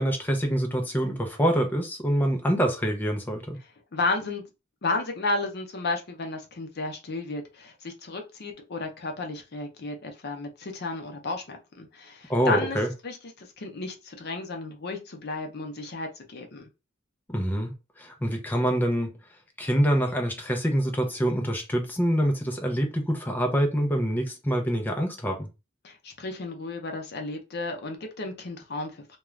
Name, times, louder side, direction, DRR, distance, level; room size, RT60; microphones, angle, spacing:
voice 1, 0.0-3.6 12.3-12.9 17.3-19.1 19.6-25.5, equal, 10° left, 0.5 m, -25 dB
voice 2, 3.9-4.4 4.8-12.8 13.0-16.7 25.8-29.2, left 3 dB, 55° left, 0.7 m, -33 dB
2.4 x 2.2 x 3.1 m
head